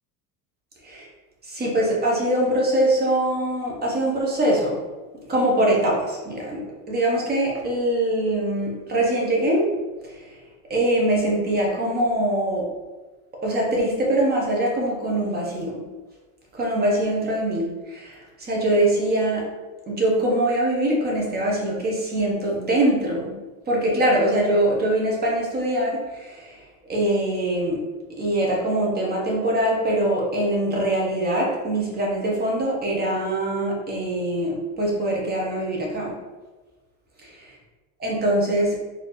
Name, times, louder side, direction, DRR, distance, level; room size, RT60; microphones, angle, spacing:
voice 1, 1.4-4.8 5.3-9.8 10.0-10.4 10.7-12.7 13.4-15.8 16.5-19.5 19.9-23.4 23.7-27.8 28.2-36.1 38.0-38.8, right 1 dB, 25° right, -2 dB, 1.1 m, -23 dB
4.6 x 3.0 x 3.1 m, 1.3 s
supercardioid pair, 140°, 42 cm